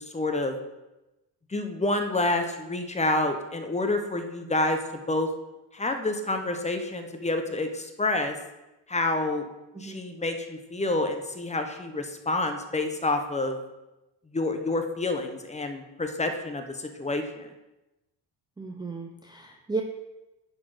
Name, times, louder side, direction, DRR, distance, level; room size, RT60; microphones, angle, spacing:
voice 1, 0.1-0.6 1.5-4.8 5.1-5.3 5.7-8.3 8.9-9.5 9.8-13.6 14.3-17.5, left 2 dB, 15° left, 6 dB, 0.8 m, -28 dB
voice 2, 18.6-19.8, right 4 dB, 10° right, 3 dB, 0.5 m, -34 dB
10.5 x 4.1 x 4.9 m, 0.99 s
cardioid pair, 125°, 42 cm